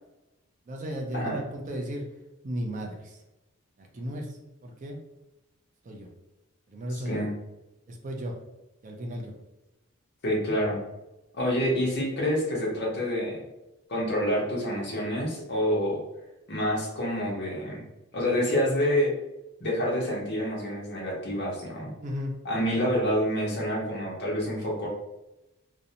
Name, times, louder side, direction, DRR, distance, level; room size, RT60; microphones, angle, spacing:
voice 1, 0.7-2.1 2.4-3.2 3.8-5.0 5.9-6.1 6.7-7.3 7.9-8.4 8.8-9.3 22.0-22.3, equal, 35° right, 1 dB, 0.3 m, -35 dB
voice 2, 6.9-7.3 10.2-10.8 11.3-13.5 13.9-16.0 16.5-17.8 18.1-19.1 19.6-21.9 22.4-24.9, equal, 50° left, -3 dB, 0.8 m, -27 dB
2.5 x 2.0 x 2.7 m, 0.97 s
head